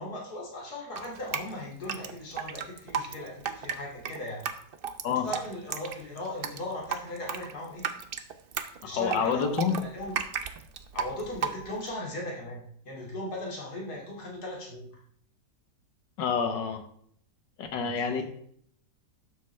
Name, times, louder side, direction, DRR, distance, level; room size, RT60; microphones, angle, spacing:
voice 1, 0.0-4.5 5.1-7.8 8.8-10.2 10.9-14.9 17.7-18.2, left 1 dB, 65° left, -2 dB, 3.1 m, -38 dB
Drip, 1.0-11.9, right 7 dB, 75° right, 0.5 m, -35 dB
voice 2, 8.8-9.8 16.2-16.9 17.6-18.2, left 6 dB, 90° left, 7 dB, 1.8 m, -28 dB
12.0 x 7.3 x 3.4 m, 0.64 s
omnidirectional pair, 1.9 m